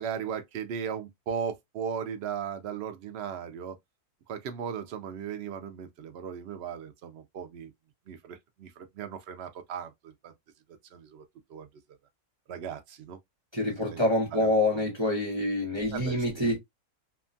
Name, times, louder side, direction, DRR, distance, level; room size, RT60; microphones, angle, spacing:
voice 1, 0.0-3.8 4.3-7.7 8.1-10.3 10.9-11.2 11.5-11.7 12.5-13.2 13.9-14.0 14.3-14.8 15.9-16.5, right 7 dB, 75° right, 0.5 m, -37 dB
voice 2, 13.5-16.6, left 1 dB, 25° right, 0.7 m, -26 dB
2.8 x 2.3 x 2.5 m
omnidirectional pair, 1.6 m